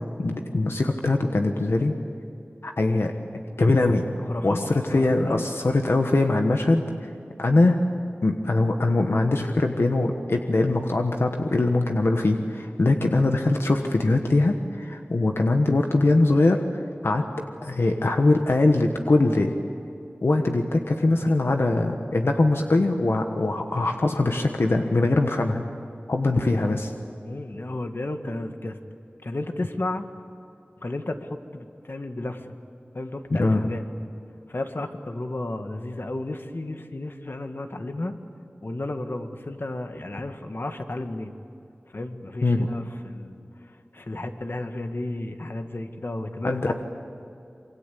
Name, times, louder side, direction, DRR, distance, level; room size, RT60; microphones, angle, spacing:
voice 1, 0.2-1.9 2.6-4.0 4.4-6.8 7.4-7.8 8.2-16.6 17.0-17.2 17.6-19.5 20.2-25.6 26.1-26.9 33.3-33.6 42.4-42.7 46.4-46.7, left 2 dB, 90° left, 4 dB, 1.4 m, -22 dB
voice 2, 4.3-5.5 26.4-26.7 27.2-28.8 29.2-30.1 30.8-32.5 32.9-33.8 34.5-38.1 38.6-41.3 41.9-43.4 43.9-46.7, left 2 dB, 65° left, 6 dB, 1.8 m, -33 dB
26.0 x 23.5 x 8.5 m, 2.6 s
wide cardioid pair, 40°, 4 cm